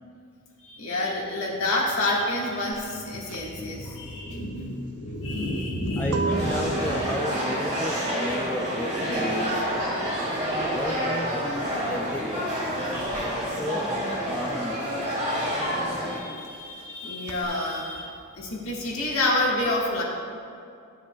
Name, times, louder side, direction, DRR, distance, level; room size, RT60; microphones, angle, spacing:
voice 1, 0.6-6.7 16.1-20.0, left 1 dB, 65° left, -3 dB, 1.6 m, -28 dB
sound 1, 2.7-13.0 13.2-17.4, right 4 dB, 80° right, 0.6 m, -37 dB
voice 2, 6.0-9.9 10.7-12.6 13.4-15.0, equal, 10° left, 1 dB, 0.3 m, -34 dB
sound 2, 6.3-16.2, equal, 35° right, 1.9 m, -28 dB
13.0 x 7.3 x 2.3 m, 2.4 s
head